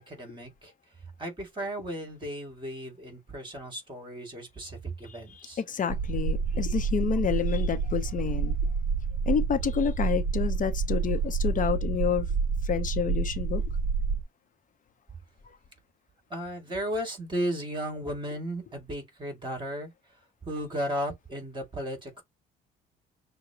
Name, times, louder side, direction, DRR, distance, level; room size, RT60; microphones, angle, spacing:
voice 1, 0.1-0.7 1.2-5.6 16.3-19.9 20.4-22.2, equal, 25° right, 2.6 m, -35 dB
voice 2, 5.3-8.6 9.3-12.3 12.6-13.6, left 7 dB, 45° left, 0.9 m, -29 dB
sound 1, 5.9-14.2, right 5 dB, 50° right, 1.0 m, -28 dB
6.3 x 2.3 x 2.9 m
cardioid pair, 85°, 19 cm